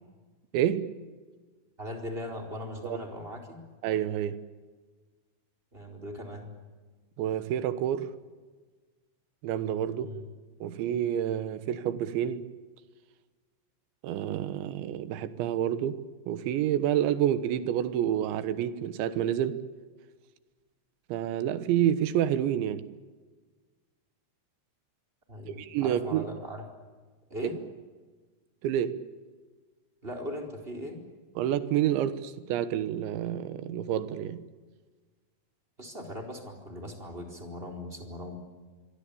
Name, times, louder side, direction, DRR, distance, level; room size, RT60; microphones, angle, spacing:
voice 1, 0.5-0.9 2.8-3.0 3.8-4.4 7.2-8.1 9.4-10.2 10.6-12.5 14.0-16.0 16.3-19.6 21.1-22.8 25.5-26.3 27.4-27.5 28.6-29.0 31.4-34.4, right 10 dB, 85° right, 3.6 m, -28 dB
voice 2, 1.8-3.6 5.7-6.5 10.0-10.2 25.3-26.6 27.3-27.6 30.0-31.0 35.8-38.4, left 1 dB, 15° right, 4.0 m, -39 dB
27.5 x 23.5 x 8.6 m
omnidirectional pair, 5.1 m